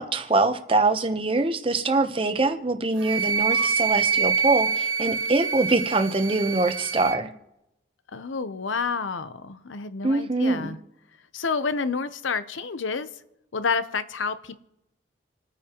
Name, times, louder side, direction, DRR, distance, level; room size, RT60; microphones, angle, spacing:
voice 1, 0.0-7.3 10.0-10.8, right 3 dB, 30° right, 7 dB, 0.8 m, -24 dB
Wind instrument woodwind instrument, 3.0-7.2, right 6 dB, 80° right, 0.6 m, -26 dB
voice 2, 8.1-10.8 11.3-13.1 13.5-14.6, left 5 dB, 85° left, 12 dB, 0.7 m, -29 dB
27.5 x 9.5 x 3.0 m, 0.86 s
head